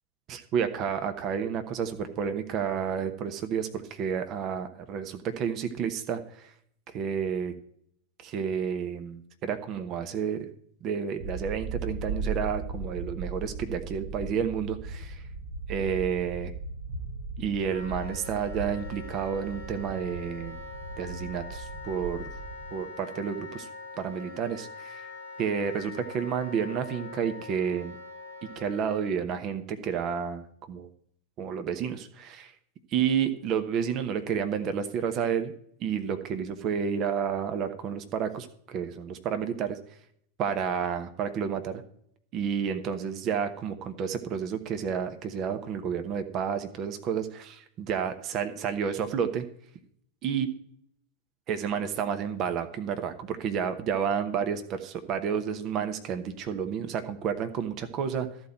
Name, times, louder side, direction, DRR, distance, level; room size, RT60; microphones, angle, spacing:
voice 1, 0.3-6.5 6.9-7.5 8.2-10.5 10.8-15.2 15.7-16.5 17.4-20.6 21.0-22.2 22.7-23.7 24.0-25.0 25.4-28.0 28.6-30.4 30.7-30.9 31.4-32.5 32.9-35.5 35.8-39.8 40.4-41.8 42.3-49.4 50.2-50.5 51.5-58.3, right 7 dB, 35° right, 8 dB, 1.0 m, -30 dB
sound 1, 11.2-22.7, right 3 dB, 55° right, 1.5 m, -37 dB
Wind instrument woodwind instrument, 17.7-29.1, left 3 dB, 80° right, 3.4 m, -43 dB
13.5 x 4.5 x 8.7 m, 0.66 s
figure-of-eight pair, 90°, 0 cm